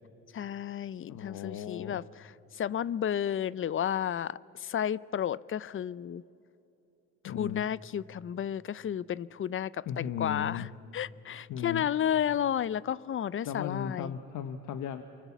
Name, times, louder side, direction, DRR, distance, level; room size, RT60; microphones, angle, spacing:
voice 1, 0.3-6.2 7.2-10.7 10.9-14.1, left 9 dB, 45° left, 0.5 m, -32 dB
voice 2, 1.1-2.0 7.2-7.7 9.9-10.7 11.5-11.9 13.4-15.0, left 8 dB, 75° left, 1.1 m, -36 dB
24.5 x 24.5 x 7.2 m
cardioid pair, 90°, 31 cm